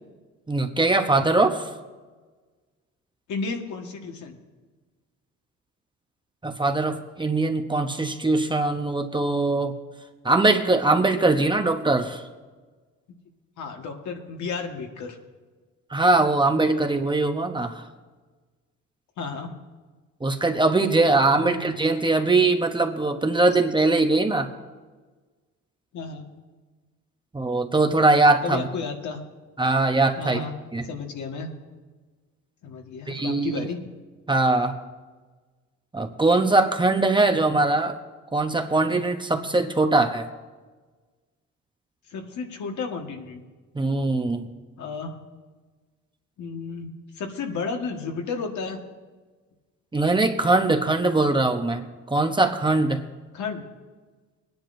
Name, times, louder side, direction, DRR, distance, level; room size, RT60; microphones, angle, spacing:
voice 1, 0.5-1.7 6.4-9.7 10.2-12.2 15.9-17.8 20.2-24.5 27.3-28.7 29.6-30.4 30.7-30.8 33.1-33.7 34.3-34.7 35.9-38.0 38.3-40.3 43.7-44.4 49.9-53.0, right 2 dB, 15° right, 5 dB, 0.9 m, -21 dB
voice 2, 3.3-4.4 13.6-15.2 19.2-19.5 21.4-21.8 25.9-26.2 28.4-29.2 30.2-30.5 30.8-31.5 32.6-33.9 42.1-43.4 44.8-45.2 46.4-46.9 47.2-48.8 53.3-53.7, left 4 dB, 70° left, 2 dB, 1.6 m, -32 dB
22.0 x 10.5 x 2.6 m, 1.4 s
cardioid pair, 90°, 30 cm